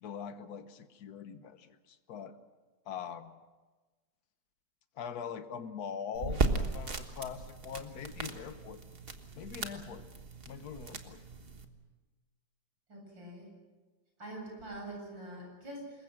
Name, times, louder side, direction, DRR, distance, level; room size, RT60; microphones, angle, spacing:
voice 1, 0.0-2.4 2.9-3.4 5.0-8.8 9.4-10.1 10.4-11.2, left 7 dB, 55° left, 10 dB, 1.5 m, -42 dB
sound 1, 6.1-11.6, right 3 dB, 35° right, 1.4 m, -36 dB
voice 2, 12.9-13.5 14.2-16.0, right 1 dB, 75° right, 0 dB, 8.7 m, -44 dB
26.5 x 21.5 x 6.2 m, 1.3 s
omnidirectional pair, 2.1 m